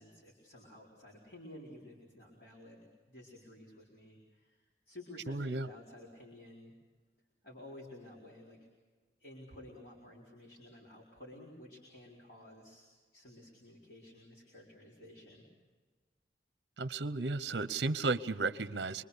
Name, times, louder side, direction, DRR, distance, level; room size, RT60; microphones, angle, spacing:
voice 1, 0.0-6.7 7.4-8.6 9.2-12.9 13.1-15.4, left 1 dB, 60° left, -3 dB, 4.5 m, -53 dB
voice 2, 5.3-5.7 16.8-19.0, right 3 dB, 65° right, 14 dB, 0.7 m, -34 dB
26.0 x 23.0 x 6.8 m, 1.4 s
head